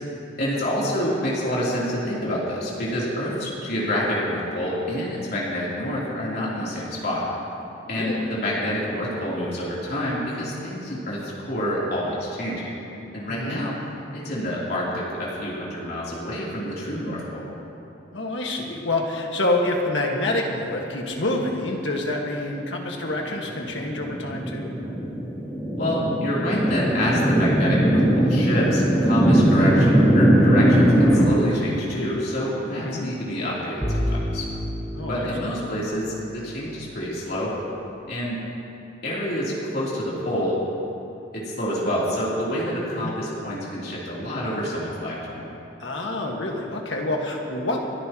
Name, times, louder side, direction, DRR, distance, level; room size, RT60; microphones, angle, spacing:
voice 1, 0.4-7.3 7.9-12.7 13.1-13.7 14.1-17.5 25.8-34.4 35.0-37.6 38.1-38.4 39.0-40.6 41.3-45.5, equal, 55° left, -7 dB, 3.4 m, -27 dB
voice 2, 7.8-8.2 13.3-13.7 18.1-24.7 32.8-33.1 34.9-35.5 43.0-43.2 45.8-47.8, left 2 dB, 75° left, 0 dB, 1.7 m, -27 dB
sound 1, 23.5-31.2, right 1 dB, 10° left, 2.6 m, -19 dB
Bowed string instrument, 33.8-36.9, equal, 10° right, 1.4 m, -30 dB
29.5 x 10.0 x 3.0 m, 2.9 s
head